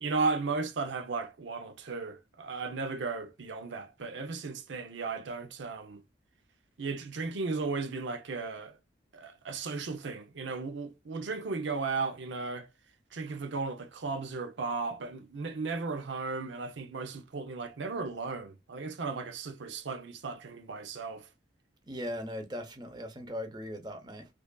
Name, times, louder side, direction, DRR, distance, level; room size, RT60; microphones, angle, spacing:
voice 1, 0.0-6.0 6.8-8.8 9.1-12.7 13.1-21.3, right 4 dB, 80° right, 0.6 m, -35 dB
voice 2, 21.9-24.3, equal, 25° right, 0.7 m, -39 dB
4.8 x 2.5 x 2.2 m
head